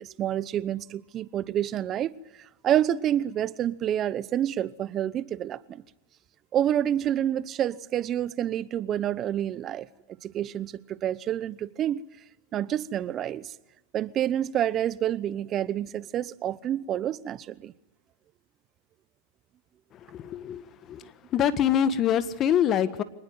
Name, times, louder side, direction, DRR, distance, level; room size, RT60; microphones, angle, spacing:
voice 1, 0.0-5.8 6.5-9.9 10.2-12.0 12.5-13.6 13.9-17.7, right 11 dB, 35° right, 0.9 m, -28 dB
voice 2, 20.1-21.0 21.3-23.0, left 9 dB, 35° left, 1.5 m, -25 dB
25.5 x 20.0 x 9.5 m
hypercardioid pair, 120°, 0 cm